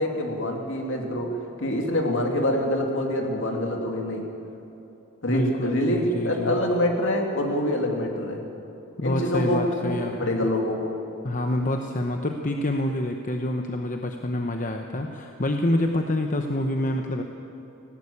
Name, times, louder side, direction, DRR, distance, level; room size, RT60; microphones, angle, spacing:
voice 1, 0.0-4.2 5.2-8.4 9.0-10.9, left 1 dB, 60° left, 2 dB, 2.7 m, -25 dB
voice 2, 5.3-6.6 9.0-10.5 11.2-17.2, left 1 dB, 35° left, 4 dB, 0.9 m, -27 dB
18.5 x 16.5 x 8.6 m, 3.0 s
head